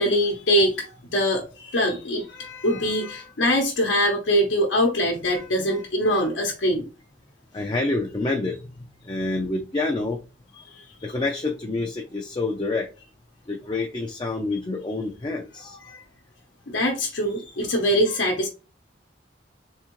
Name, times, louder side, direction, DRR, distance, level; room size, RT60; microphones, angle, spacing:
voice 1, 0.0-6.8 15.9-16.0 16.7-18.5, equal, 75° left, 1 dB, 0.8 m, -23 dB
voice 2, 7.5-8.7 9.0-10.2 11.0-12.9 13.5-15.9, left 2 dB, 25° left, 1 dB, 0.4 m, -27 dB
3.6 x 3.5 x 3.0 m, 0.32 s
head